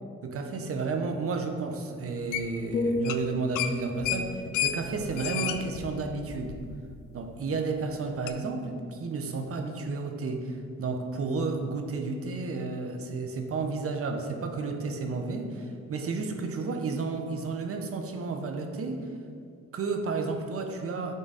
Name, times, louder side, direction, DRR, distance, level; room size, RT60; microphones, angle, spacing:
voice 1, 0.2-6.6 7.1-19.0 19.7-21.1, right 4 dB, 50° right, 5 dB, 0.9 m, -32 dB
sound 1, 2.3-2.7 3.0-3.2 3.5-6.9 7.3-7.4 8.3-8.4, left 11 dB, 85° left, 0.5 m, -32 dB
sound 2, 2.7-6.7 7.1-7.4, left 1 dB, 25° left, 0.4 m, -35 dB
9.2 x 3.8 x 4.0 m, 2.3 s
cardioid pair, 90°, 30 cm